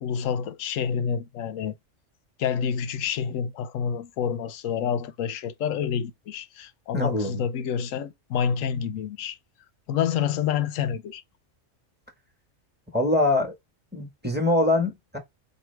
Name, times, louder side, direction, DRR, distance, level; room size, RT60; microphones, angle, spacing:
voice 1, 0.0-1.7 2.4-9.4 9.9-11.2, left 8 dB, 90° left, 1.0 m, -28 dB
voice 2, 6.9-7.4 12.9-13.5 13.9-15.2, left 2 dB, 10° right, 1.2 m, -23 dB
4.7 x 2.7 x 3.2 m
omnidirectional pair, 1.3 m